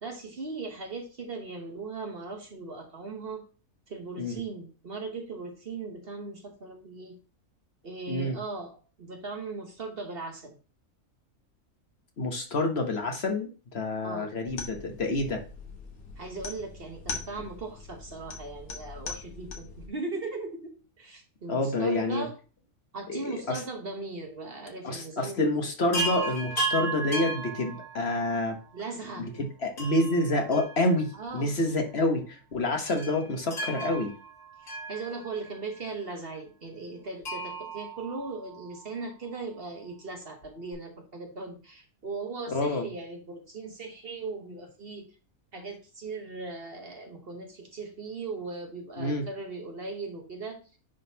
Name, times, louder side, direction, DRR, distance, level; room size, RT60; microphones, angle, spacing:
voice 1, 0.0-3.4 3.9-7.2 7.8-10.6 14.0-14.3 16.2-22.3 22.9-25.4 28.7-29.3 31.1-31.5 34.6-45.1 45.5-50.6, right 3 dB, 45° right, 4 dB, 1.2 m, -38 dB
voice 2, 8.1-8.4 12.2-15.4 21.5-22.3 23.1-23.6 24.8-28.6 29.2-34.1 42.5-42.9 49.0-49.2, left 2 dB, 50° left, 4 dB, 1.2 m, -28 dB
sound 1, 14.5-19.9, left 4 dB, 85° left, 1.7 m, -41 dB
Chime, 25.9-28.4 29.8-31.3 31.6-31.7 32.9-35.6 37.2-38.8 40.4-40.5 40.7-40.8, right 3 dB, 65° left, 3.3 m, -35 dB
10.0 x 3.9 x 2.8 m, 0.35 s
omnidirectional pair, 1.5 m